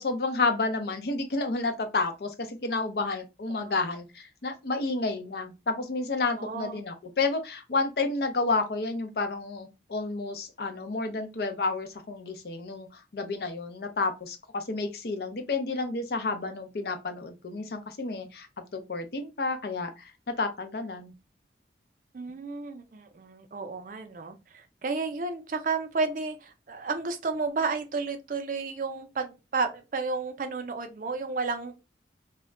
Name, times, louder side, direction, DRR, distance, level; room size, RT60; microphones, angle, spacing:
voice 1, 0.0-18.5 18.7-21.1, left 3 dB, 60° left, 0.5 m, -30 dB
voice 2, 6.4-6.8 22.1-31.7, right 4 dB, 45° right, 0.4 m, -32 dB
2.2 x 2.1 x 3.6 m
head